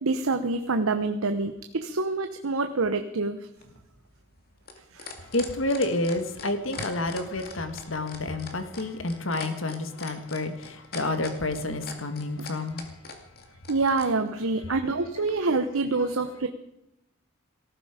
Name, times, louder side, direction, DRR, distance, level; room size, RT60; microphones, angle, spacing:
voice 1, 0.0-3.4 4.9-5.1 13.7-16.5, right 3 dB, 80° right, 8 dB, 1.0 m, -26 dB
sound 1, 3.6-14.1 15.3-15.4, left 5 dB, 45° left, 2.4 m, -41 dB
voice 2, 5.3-12.8 14.7-14.8, left 2 dB, 70° left, 8 dB, 1.8 m, -29 dB
18.0 x 14.5 x 5.1 m, 0.89 s
head